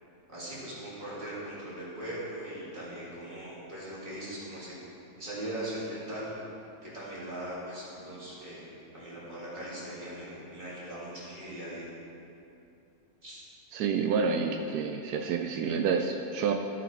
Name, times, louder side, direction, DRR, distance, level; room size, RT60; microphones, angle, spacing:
voice 1, 0.3-4.8 5.2-6.3 6.8-11.9 13.2-13.5, right 1 dB, 30° right, -8 dB, 2.6 m, -40 dB
voice 2, 13.7-16.5, right 5 dB, 85° right, 3 dB, 1.1 m, -28 dB
14.0 x 5.0 x 4.5 m, 2.7 s
omnidirectional pair, 1.6 m